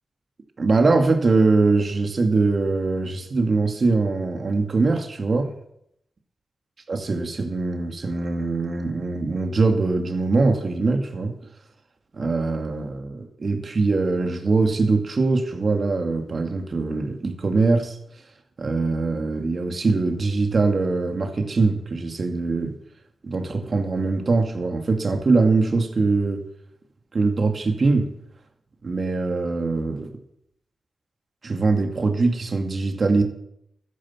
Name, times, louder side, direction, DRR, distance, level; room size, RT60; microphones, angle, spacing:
voice 1, 0.6-5.5 6.9-11.3 12.1-18.0 18.6-22.7 23.2-26.4 27.1-28.1 28.8-30.1 31.4-33.2, right 3 dB, 55° right, 5 dB, 2.4 m, -22 dB
13.0 x 10.0 x 7.4 m, 0.76 s
cardioid pair, 50°, 0 cm